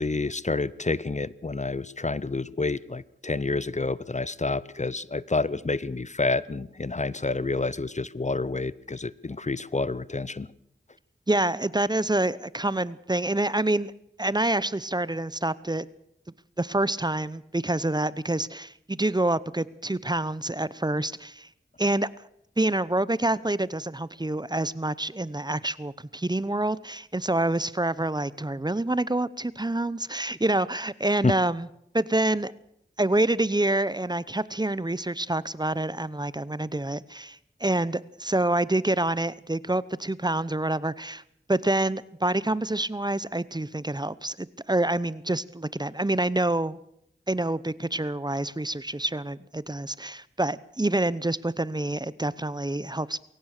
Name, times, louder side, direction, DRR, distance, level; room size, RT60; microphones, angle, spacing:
voice 1, 0.0-10.5 31.2-31.3, left 3 dB, 40° left, 20 dB, 0.8 m, -28 dB
voice 2, 11.3-13.9 14.2-15.9 16.6-21.5 21.8-22.1 22.6-31.7 31.9-32.5 33.0-41.2 41.5-46.8 47.3-53.2, right 2 dB, 20° right, 19 dB, 0.8 m, -27 dB
22.0 x 18.0 x 6.6 m, 0.73 s
wide cardioid pair, 60°, 19 cm